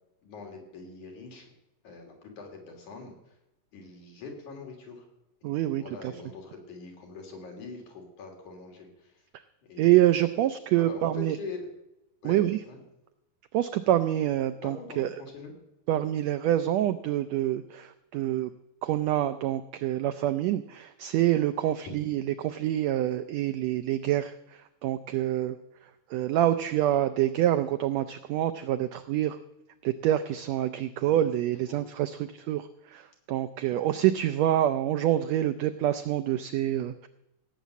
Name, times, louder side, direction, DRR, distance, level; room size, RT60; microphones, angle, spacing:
voice 1, 0.2-1.5 1.8-3.3 3.7-5.1 5.4-9.2 9.7-9.9 10.8-11.7 12.2-12.8 14.6-15.5 31.0-31.2 31.7-31.8, left 4 dB, 70° left, 2 dB, 4.3 m, -43 dB
voice 2, 5.4-5.8 9.8-11.4 12.2-12.6 13.5-15.1 15.9-18.5 18.8-25.6 26.1-29.4 29.8-37.1, right 12 dB, 85° right, 11 dB, 1.5 m, -26 dB
16.5 x 7.4 x 8.1 m, 0.90 s
omnidirectional pair, 3.7 m